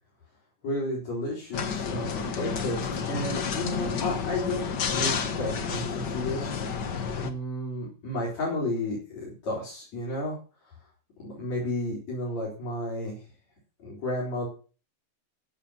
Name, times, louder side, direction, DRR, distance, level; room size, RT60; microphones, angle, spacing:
voice 1, 0.6-4.7 4.9-6.5 7.2-10.4 11.2-13.2 13.8-14.5, left 1 dB, 65° left, -4 dB, 5.5 m, -32 dB
sound 1, 1.5-7.3, left 6 dB, 45° left, 1.6 m, -30 dB
14.5 x 8.1 x 5.7 m, 0.37 s
omnidirectional pair, 3.3 m